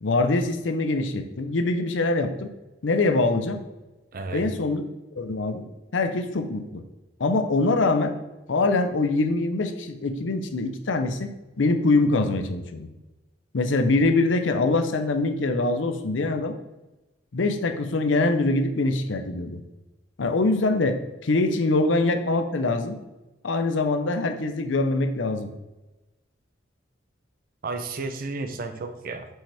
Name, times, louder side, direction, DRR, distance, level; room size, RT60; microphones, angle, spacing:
voice 1, 0.0-2.5 2.8-3.6 4.3-4.8 5.2-5.6 5.9-6.8 7.2-8.2 8.5-11.3 11.6-12.9 13.5-16.6 17.3-19.6 20.2-23.0 23.4-25.5, left 2 dB, 90° left, 7 dB, 0.7 m, -24 dB
voice 2, 4.1-4.5 27.6-29.3, right 3 dB, 50° right, 8 dB, 0.6 m, -32 dB
5.6 x 5.4 x 3.4 m, 1.0 s
head